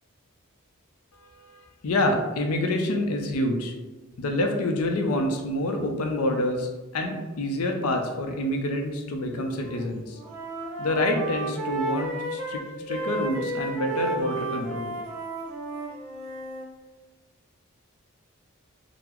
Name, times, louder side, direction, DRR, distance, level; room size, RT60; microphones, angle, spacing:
voice 1, 1.1-3.7 4.2-10.2 10.8-15.0, left 1 dB, 90° left, 3 dB, 0.5 m, -27 dB
Wind instrument woodwind instrument, 9.4-9.8 10.1-16.7, right 2 dB, 70° right, 0.9 m, -33 dB
3.8 x 2.0 x 2.9 m, 1.2 s
head